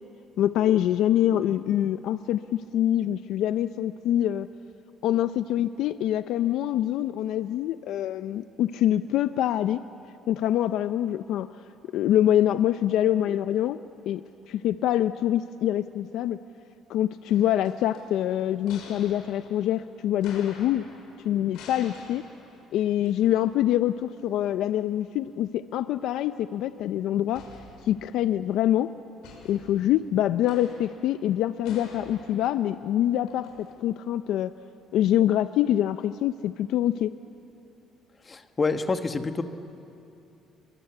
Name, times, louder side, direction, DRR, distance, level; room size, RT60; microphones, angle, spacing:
voice 1, 0.4-4.5 5.0-9.8 10.3-11.5 11.9-13.8 14.1-16.4 16.9-20.8 21.2-22.2 22.7-27.4 27.9-28.9 29.4-34.5 34.9-37.1, left 12 dB, 70° left, 12 dB, 0.5 m, -25 dB
sound 1, 17.3-23.9 24.2-24.3 27.3-28.4 29.2-33.7, left 4 dB, 85° left, 6.2 m, -49 dB
voice 2, 38.3-39.4, left 4 dB, 20° left, 8 dB, 1.2 m, -27 dB
29.0 x 23.5 x 8.1 m, 2.7 s
cardioid pair, 160°, 0 cm